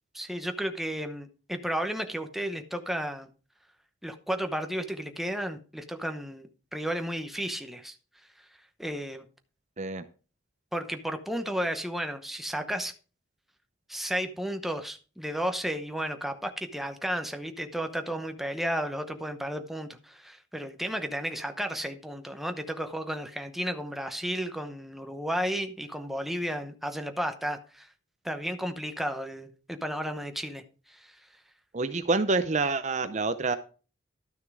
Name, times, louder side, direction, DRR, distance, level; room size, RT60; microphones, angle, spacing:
voice 1, 0.1-3.3 4.0-8.0 8.8-9.2 10.7-12.9 13.9-27.9 28.2-30.6 30.9-31.2, equal, ahead, 0.8 m, -33 dB
voice 2, 31.7-33.6, right 3 dB, 35° right, 0.6 m, -27 dB
12.0 x 6.5 x 4.8 m
head